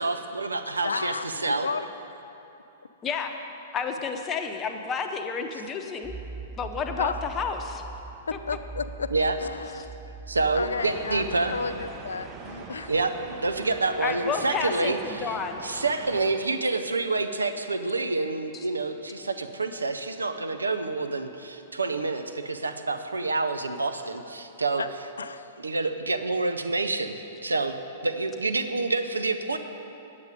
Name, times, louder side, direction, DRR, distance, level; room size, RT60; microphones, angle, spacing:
voice 1, 0.0-1.7 9.1-9.3 10.3-11.5 12.9-15.3 15.6-24.8 25.6-27.2 27.4-27.8 28.0-29.6, right 3 dB, 90° right, 8 dB, 0.5 m, -27 dB
voice 2, 0.8-1.9 7.0-7.2 8.3-9.1 9.4-9.9 10.5-12.9 24.8-24.9 25.2-25.6, left 5 dB, 85° left, 13 dB, 0.3 m, -33 dB
voice 3, 3.7-6.1 6.6-7.8 14.0-15.6 18.5-18.7, left 5 dB, 25° left, 5 dB, 0.8 m, -30 dB
sound 1, 6.0-14.1, right 4 dB, ahead, 0.3 m, -43 dB
sound 2, 10.8-16.3, right 4 dB, 30° right, 0.9 m, -42 dB
8.4 x 8.1 x 5.1 m, 2.8 s
hypercardioid pair, 110°, 0 cm